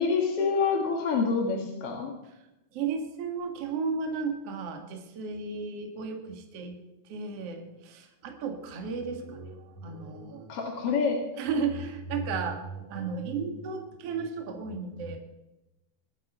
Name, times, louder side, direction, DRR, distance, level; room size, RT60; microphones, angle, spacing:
voice 1, 0.0-2.1 10.5-11.2, left 5 dB, 45° left, 1 dB, 2.1 m, -27 dB
voice 2, 2.7-6.8 7.1-10.6 11.4-15.2, right 5 dB, 50° right, 5 dB, 2.2 m, -34 dB
21.5 x 10.5 x 5.5 m, 0.96 s
omnidirectional pair, 4.6 m